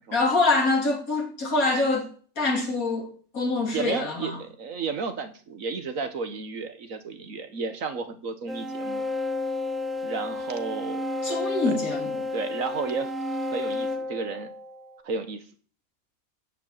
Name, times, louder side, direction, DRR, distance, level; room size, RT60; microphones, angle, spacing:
voice 1, 0.1-2.1 2.4-4.4 11.2-12.3, left 3 dB, 75° left, 3.5 m, -25 dB
voice 2, 3.7-9.0 10.0-11.0 11.6-11.7 12.3-13.1 13.5-14.5 15.0-15.4, right 5 dB, 65° right, 1.6 m, -32 dB
sound 1, 8.5-15.0, left 2 dB, ahead, 0.8 m, -31 dB
12.5 x 5.3 x 8.8 m
omnidirectional pair, 1.5 m